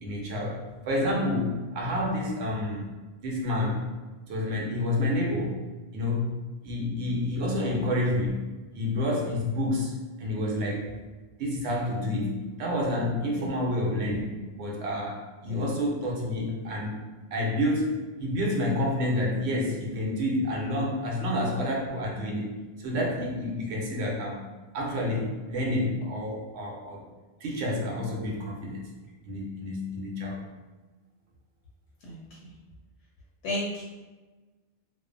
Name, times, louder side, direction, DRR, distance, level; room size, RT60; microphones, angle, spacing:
voice 1, 0.0-2.9 3.2-3.9 4.3-5.6 5.9-6.4 6.6-8.4 8.7-9.9 10.2-10.9 11.4-17.0 17.3-22.5 22.8-24.4 24.7-27.0 27.4-28.9 29.2-30.4, left 1 dB, 70° right, -1 dB, 0.8 m, -29 dB
voice 2, 32.0-32.5 33.4-33.8, left 1 dB, 75° left, -6 dB, 0.9 m, -34 dB
2.4 x 2.1 x 2.5 m, 1.2 s
omnidirectional pair, 1.2 m